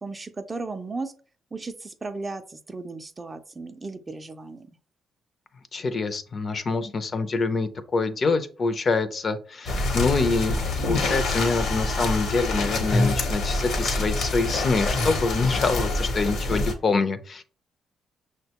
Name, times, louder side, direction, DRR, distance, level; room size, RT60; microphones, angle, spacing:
voice 1, 0.0-1.1 1.5-4.7, right 3 dB, 25° right, 8 dB, 0.4 m, -35 dB
voice 2, 5.7-17.4, left 3 dB, 40° left, 10 dB, 0.5 m, -25 dB
sound 1, 9.7-16.7, left 2 dB, 75° left, 0.9 m, -26 dB
5.9 x 2.2 x 2.8 m, 0.41 s
cardioid pair, 90°, 0 cm